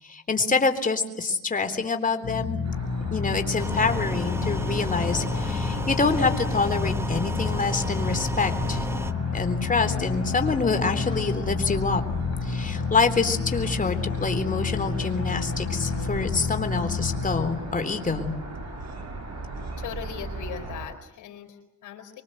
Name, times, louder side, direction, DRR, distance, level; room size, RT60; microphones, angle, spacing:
voice 1, 0.0-2.6 3.1-8.8 9.3-12.1 12.4-18.3, left 4 dB, 25° left, 7 dB, 3.7 m, -26 dB
sound 1, 2.2-18.8, left 5 dB, 55° left, 3.4 m, -30 dB
sound 2, 2.6-20.9, right 2 dB, 60° right, 7.3 m, -38 dB
sound 3, 3.6-9.1, right 1 dB, 10° right, 1.2 m, -33 dB
voice 2, 19.8-22.2, left 8 dB, 80° left, 5 dB, 4.3 m, -39 dB
25.5 x 24.5 x 8.0 m, 0.83 s
cardioid pair, 90°, 30 cm